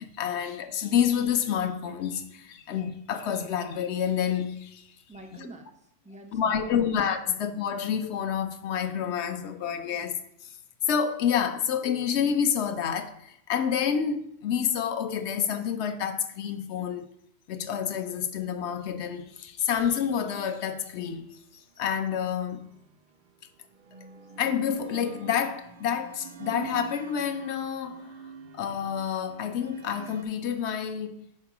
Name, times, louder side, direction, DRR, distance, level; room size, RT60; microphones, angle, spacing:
voice 1, 0.0-4.9 6.3-10.2 10.9-17.1 17.5-21.3 21.8-22.7 24.4-28.1 28.5-31.3, left 8 dB, 65° left, 0.8 m, -28 dB
voice 2, 5.1-6.9 7.2-7.3 9.7-10.0, right 1 dB, 10° right, 0.5 m, -48 dB
sound 1, 21.9-22.8 23.7-30.2, right 5 dB, 85° right, 0.4 m, -44 dB
4.6 x 4.4 x 6.0 m
omnidirectional pair, 1.4 m